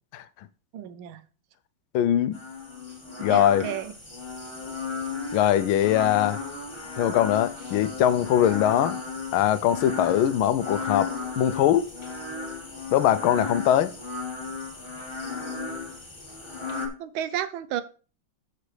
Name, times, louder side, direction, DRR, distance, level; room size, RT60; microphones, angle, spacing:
voice 1, 0.7-1.2 3.3-3.9 17.0-17.8, right 10 dB, 85° right, 1.5 m, -32 dB
voice 2, 1.9-2.4 3.2-3.7 5.3-6.4 7.0-9.0 9.3-11.9 12.9-13.9, left 11 dB, 90° left, 1.4 m, -22 dB
sound 1, 2.3-16.9, left 4 dB, 15° left, 1.6 m, -35 dB
13.5 x 5.1 x 3.2 m
omnidirectional pair, 2.2 m